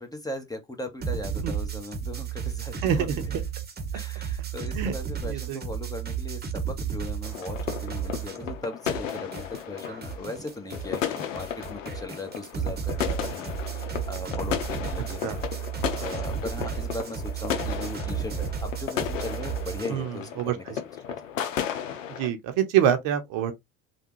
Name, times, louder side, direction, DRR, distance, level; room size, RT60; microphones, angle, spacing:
voice 1, 0.0-3.2 3.9-20.9, left 1 dB, 10° left, 1.0 m, -38 dB
sound 1, 1.0-8.6 8.9-19.9, right 7 dB, 25° right, 1.0 m, -33 dB
voice 2, 2.8-3.1 4.7-4.9 5.3-5.6 15.2-15.4 19.9-20.5 22.2-23.5, right 9 dB, 60° right, 0.8 m, -25 dB
sound 2, 7.2-22.3, left 9 dB, 90° left, 0.6 m, -34 dB
3.4 x 2.3 x 3.0 m
hypercardioid pair, 65°, 38 cm